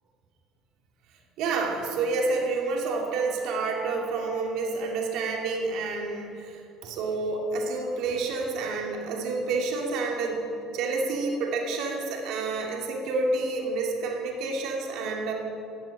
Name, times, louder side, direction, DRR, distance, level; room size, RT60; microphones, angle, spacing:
voice 1, 1.4-10.4 10.7-15.3, right 3 dB, 70° right, 0 dB, 2.4 m, -29 dB
13.5 x 7.7 x 8.6 m, 2.6 s
cardioid pair, 110°, 0 cm